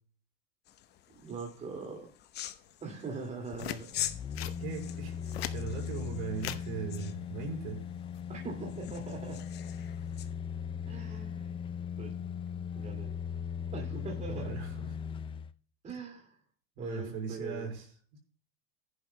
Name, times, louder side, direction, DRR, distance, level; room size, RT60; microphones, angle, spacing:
sound 1, 0.6-10.3, left 12 dB, 35° left, 0.9 m, -45 dB
voice 1, 1.1-2.1 2.8-3.9 8.3-9.4 10.9-11.6 12.0-12.1 12.5-13.1 13.7-14.5 15.8-16.4 16.8-17.7, right 4 dB, 25° right, 0 dB, 2.3 m, -41 dB
sound 2, 3.5-3.8 4.3-4.6 5.1-5.6 6.4-6.6 7.9-8.2, left 13 dB, 75° left, 0.9 m, -38 dB
sound 3, 3.9-15.5 15.9-16.0, left 7 dB, 15° left, 0.5 m, -39 dB
voice 2, 4.6-7.8 13.9-14.9 16.8-17.9, right 4 dB, 65° right, -2 dB, 6.2 m, -39 dB
14.5 x 10.5 x 2.2 m, 0.43 s
hypercardioid pair, 115°, 30 cm